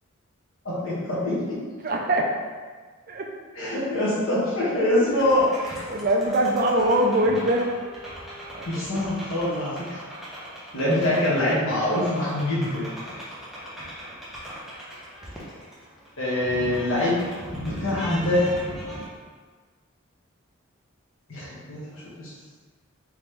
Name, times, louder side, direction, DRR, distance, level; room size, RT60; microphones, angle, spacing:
voice 1, 0.6-1.6 3.5-5.5 8.7-10.0 10.7-12.9 16.2-17.2 17.8-18.6 21.3-21.8 22.2-22.3, left 1 dB, 65° left, -7 dB, 1.1 m, -24 dB
voice 2, 1.8-2.3 3.1-3.3 5.9-7.7 8.5-8.7, right 1 dB, 40° right, 1 dB, 0.4 m, -22 dB
sound 1, 5.0-19.0, equal, ahead, 0.6 m, -39 dB
3.6 x 2.9 x 3.2 m, 1.5 s
head